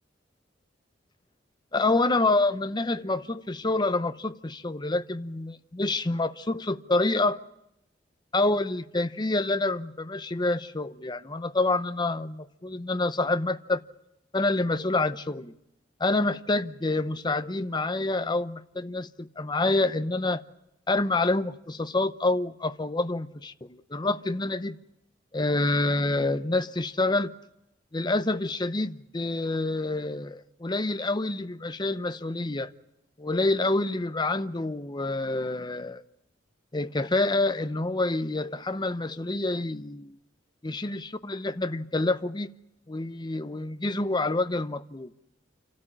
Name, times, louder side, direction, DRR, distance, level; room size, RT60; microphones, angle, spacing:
voice 1, 1.7-7.4 8.3-13.8 14.3-15.5 16.0-20.4 20.9-24.8 25.3-27.3 27.9-32.7 33.2-36.0 36.7-40.2 40.6-42.5 42.9-45.1, left 2 dB, 25° left, 0.8 m, -27 dB
28.5 x 13.0 x 10.0 m
head